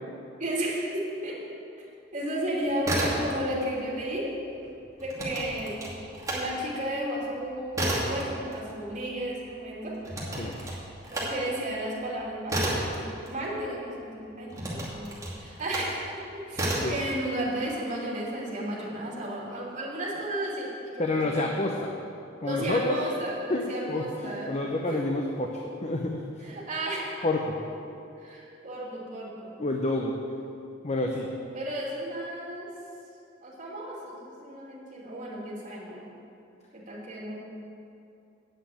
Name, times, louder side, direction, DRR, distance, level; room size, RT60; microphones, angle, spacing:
voice 1, 0.4-1.9 2.1-4.3 5.0-5.8 6.3-10.0 11.1-16.1 16.3-21.6 22.4-24.6 24.8-25.1 26.4-27.2 28.2-29.5 31.5-32.7 33.4-36.0 36.7-37.3, right 1 dB, 40° right, -5 dB, 2.8 m, -33 dB
sound 1, 2.7-3.7 4.0-6.4 6.8-13.9 14.5-16.0 16.5-17.0, right 1 dB, 15° right, 2.5 m, -32 dB
voice 2, 21.0-22.0 22.4-23.0 23.5-25.5 25.8-26.2 27.2-27.6 29.6-30.1 30.8-31.3, left 2 dB, 35° left, 1 dB, 0.8 m, -28 dB
8.9 x 7.7 x 8.5 m, 2.6 s
head